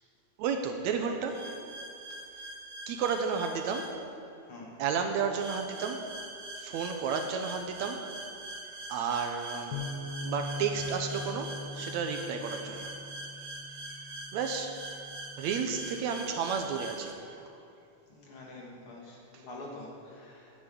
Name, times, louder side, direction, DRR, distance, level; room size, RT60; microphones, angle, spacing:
voice 1, 0.4-1.5 2.9-4.0 4.8-6.2 6.6-8.2 8.9-9.9 10.2-13.0 14.3-14.9 15.4-17.3 19.3-19.5, right 6 dB, 75° right, 5 dB, 1.9 m, -32 dB
sound 1, 1.3-3.9 5.4-17.1, right 2 dB, 55° right, 1.8 m, -43 dB
voice 2, 4.5-4.8 18.1-20.5, left 2 dB, 50° left, -2 dB, 2.4 m, -46 dB
sound 2, 9.7-16.0, left 3 dB, 75° left, 1.8 m, -42 dB
10.0 x 8.8 x 8.5 m, 2.6 s
omnidirectional pair, 3.5 m